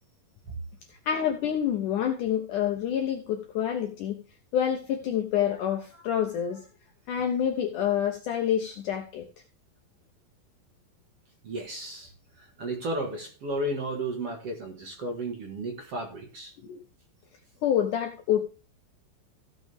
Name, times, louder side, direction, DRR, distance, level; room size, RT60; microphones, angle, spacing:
voice 1, 1.1-4.2 4.5-6.6 7.1-9.2 16.6-16.8 17.6-18.4, left 9 dB, 70° left, 2.0 m, -27 dB
voice 2, 11.4-12.1 12.4-16.5, right 1 dB, 45° right, 2.2 m, -33 dB
15.5 x 6.2 x 3.5 m
omnidirectional pair, 4.6 m